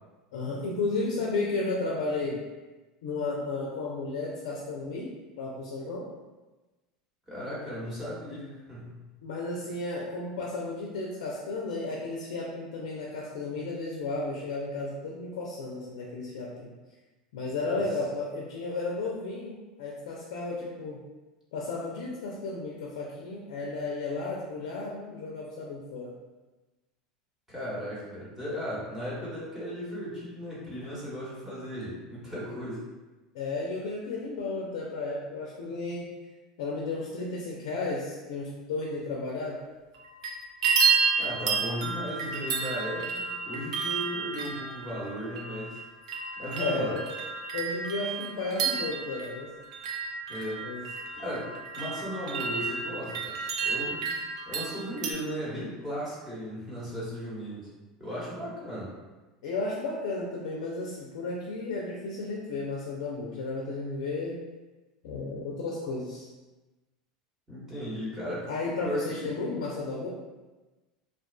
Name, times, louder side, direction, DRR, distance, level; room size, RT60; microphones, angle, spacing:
voice 1, 0.3-2.4 3.0-5.1 5.4-6.1 9.2-16.7 17.3-21.0 21.5-26.1 33.3-36.1 36.6-39.6 46.6-47.0 47.5-49.5 50.6-50.8 59.4-64.4 65.0-66.3 68.5-70.1, left 3 dB, 75° left, -3 dB, 0.4 m, -33 dB
voice 2, 7.3-9.0 27.5-32.9 41.2-45.8 46.4-46.9 50.3-50.7 51.1-54.0 54.5-57.7 58.0-58.9 67.5-68.5 68.8-69.3, equal, 10° right, -9 dB, 1.1 m, -36 dB
sound 1, 39.9-40.3 40.6-55.1, right 5 dB, 80° right, 0.3 m, -31 dB
2.3 x 2.3 x 2.2 m, 1.2 s
hypercardioid pair, 90°, 3 cm